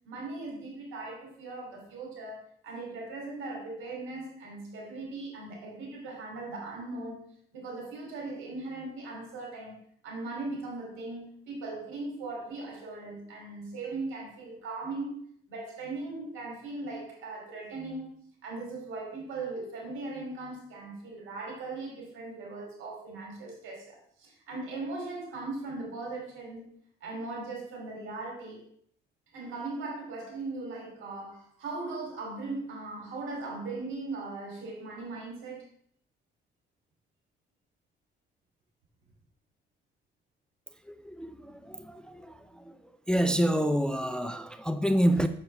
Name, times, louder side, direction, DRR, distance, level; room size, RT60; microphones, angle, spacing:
voice 1, 0.0-7.2 7.5-15.1 15.5-18.1 18.4-26.7 27.0-28.6 29.3-35.6, right 3 dB, 85° right, -1 dB, 2.8 m, -39 dB
voice 2, 40.9-42.8 43.1-45.3, equal, 5° left, 10 dB, 0.4 m, -28 dB
6.6 x 5.8 x 3.3 m, 0.63 s
cardioid pair, 90°, 20 cm